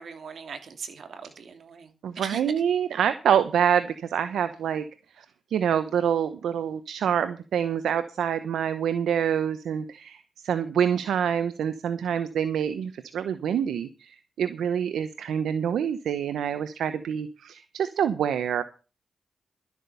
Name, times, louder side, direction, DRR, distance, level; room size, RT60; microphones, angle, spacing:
voice 1, 0.0-2.4, right 5 dB, 70° right, 7 dB, 2.6 m, -40 dB
voice 2, 2.0-4.9 5.2-5.3 5.5-18.6, right 8 dB, 85° right, 12 dB, 0.8 m, -26 dB
13.0 x 8.2 x 6.8 m, 0.34 s
cardioid pair, 55°, 0 cm